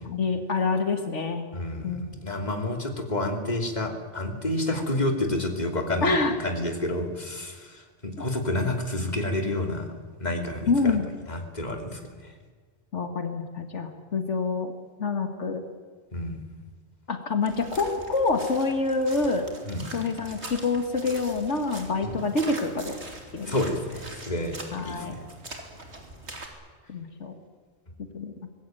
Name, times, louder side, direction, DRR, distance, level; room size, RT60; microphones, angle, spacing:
voice 1, 0.0-1.5 1.8-2.0 4.7-4.8 6.0-6.3 10.7-11.1 12.9-14.7 15.0-15.6 17.1-19.5 19.9-23.0 23.3-23.6 24.7-25.2 26.9-27.3 28.1-28.3, left 3 dB, 85° left, 6 dB, 2.2 m, -26 dB
voice 2, 1.5-9.9 10.2-11.0 11.3-12.3 16.1-16.4 19.7-19.8 22.0-22.2 23.5-24.6 24.8-25.2, left 1 dB, 35° left, 4 dB, 3.0 m, -29 dB
sound 1, 17.4-26.5, right 2 dB, 70° right, 3.4 m, -42 dB
24.5 x 20.0 x 9.2 m, 1.5 s
omnidirectional pair, 1.2 m